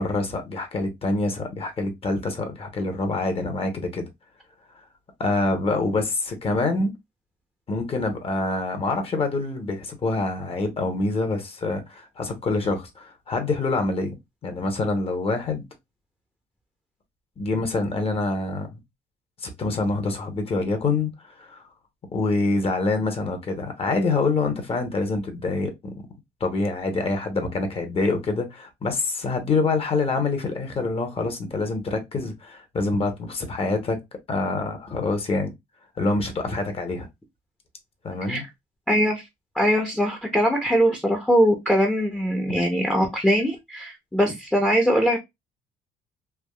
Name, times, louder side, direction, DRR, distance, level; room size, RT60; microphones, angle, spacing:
voice 1, 0.0-4.1 5.2-6.9 7.7-14.1 14.4-15.6 17.4-18.8 19.4-21.6 22.1-25.9 26.4-34.0 34.3-35.5 36.0-37.1 38.0-38.4 42.5-42.6, left 3 dB, 35° left, 0.9 m, -26 dB
voice 2, 38.9-39.3 39.5-45.2, equal, 5° left, 0.6 m, -21 dB
3.4 x 2.3 x 2.2 m
cardioid pair, 110°, 17 cm